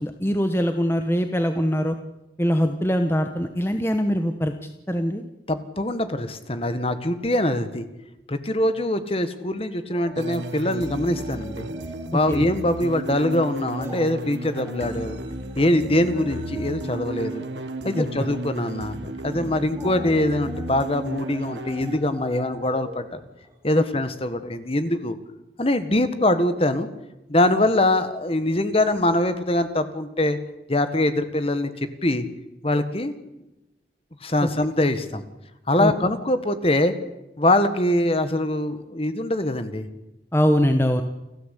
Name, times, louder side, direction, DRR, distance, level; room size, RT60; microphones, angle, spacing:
voice 1, 0.0-2.0 2.4-5.2 12.3-12.4 17.9-18.1 35.8-35.9 40.3-41.0, equal, 15° left, 6 dB, 1.2 m, -22 dB
voice 2, 5.5-7.9 8.3-11.7 12.1-15.2 15.6-17.4 17.8-23.2 23.6-25.2 25.6-26.9 27.3-30.4 30.7-32.2 32.6-33.1 34.2-35.2 35.7-36.9 37.4-39.9, left 1 dB, 30° left, 10 dB, 1.6 m, -23 dB
sound 1, 9.9-12.3 12.6-12.8 13.3-24.2 24.6-24.7, equal, 15° right, 5.5 m, -42 dB
sound 2, 10.2-22.0, right 2 dB, 80° right, 1.6 m, -34 dB
29.5 x 12.5 x 8.4 m, 0.95 s
head